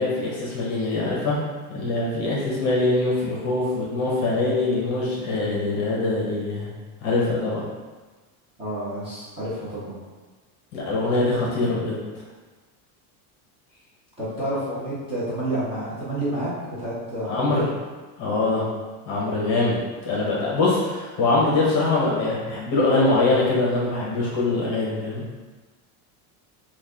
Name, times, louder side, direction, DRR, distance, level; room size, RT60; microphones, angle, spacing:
voice 1, 0.0-1.4 1.7-6.7 7.0-7.6 10.7-11.9 17.3-17.6 18.2-18.7 19.1-19.8 20.0-25.3, left 2 dB, 40° left, -5 dB, 0.9 m, -23 dB
voice 2, 8.6-10.0 14.2-16.5 16.8-17.7, right 1 dB, 15° right, -12 dB, 0.7 m, -29 dB
3.1 x 2.3 x 3.6 m, 1.3 s
cardioid pair, 175°, 44 cm